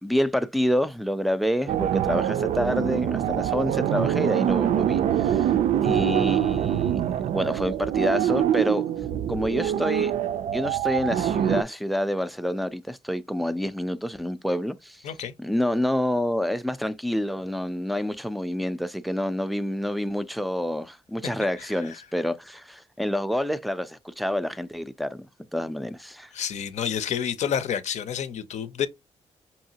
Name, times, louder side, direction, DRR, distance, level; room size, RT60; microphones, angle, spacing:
voice 1, 0.0-5.5 5.8-7.0 7.3-8.9 9.3-10.1 10.5-15.0 15.4-25.2 25.5-26.3, equal, ahead, 0.3 m, -28 dB
sound 1, 1.7-11.6, right 10 dB, 90° right, 0.4 m, -24 dB
voice 2, 26.3-28.9, left 8 dB, 80° left, 0.6 m, -29 dB
5.4 x 2.8 x 2.7 m
wide cardioid pair, 155°, 12 cm